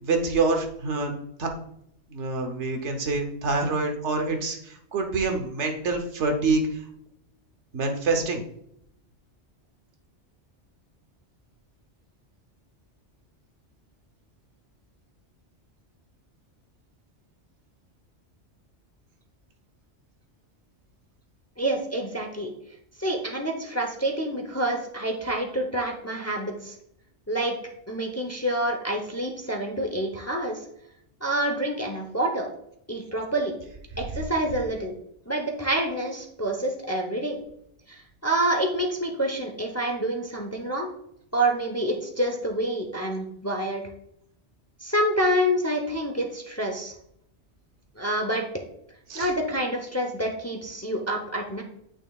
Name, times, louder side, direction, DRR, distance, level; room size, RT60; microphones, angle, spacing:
voice 1, 0.0-1.1 1.4-1.5 2.1-6.7 7.7-8.4 49.1-49.3, right 3 dB, 75° right, 4 dB, 1.3 m, -26 dB
voice 2, 21.6-22.5 23.0-26.7 27.3-27.5 27.9-30.6 31.2-32.5 32.9-33.5 34.0-34.9 35.3-37.4 37.9-40.9 41.3-43.9 44.8-46.9 48.0-48.4 49.1-51.6, right 1 dB, 15° left, 2 dB, 0.7 m, -27 dB
8.8 x 6.0 x 2.4 m, 0.74 s
omnidirectional pair, 1.2 m